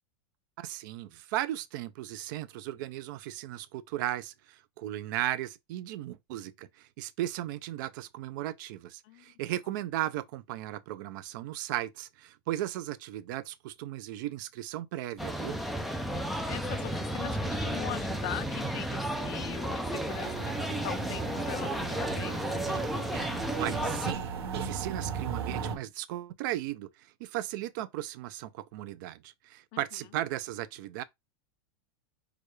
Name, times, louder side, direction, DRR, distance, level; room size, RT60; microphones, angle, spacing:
voice 1, 0.6-15.6 23.6-24.2 24.5-26.9 27.2-31.0, right 14 dB, 50° right, 0.5 m, -36 dB
sound 1, 15.2-24.1, right 1 dB, ahead, 0.5 m, -33 dB
voice 2, 16.4-22.6 29.7-29.8, left 13 dB, 40° left, 0.6 m, -41 dB
sound 2, 20.1-25.7, right 6 dB, 85° right, 1.6 m, -36 dB
6.4 x 2.4 x 3.2 m
supercardioid pair, 160°, 13 cm